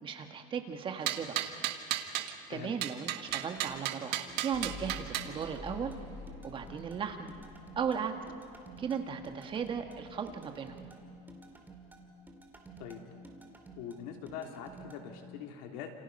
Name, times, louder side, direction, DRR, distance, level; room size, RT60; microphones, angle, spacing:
voice 1, 0.0-1.5 2.5-5.9 6.4-7.3 7.7-8.1 8.8-10.8, right 7 dB, 30° right, 6 dB, 1.7 m, -36 dB
sound 1, 1.1-2.3 2.8-5.3, right 13 dB, 65° right, 1.6 m, -34 dB
sound 2, 3.3-15.0, right 3 dB, 10° right, 2.3 m, -52 dB
Mechanical fan, 4.5-11.4 11.6-12.5, left 3 dB, 45° left, 8.0 m, -50 dB
voice 2, 13.8-15.9, left 8 dB, 90° left, 3 dB, 3.1 m, -43 dB
29.5 x 28.0 x 5.5 m, 2.7 s
cardioid pair, 150°, 18 cm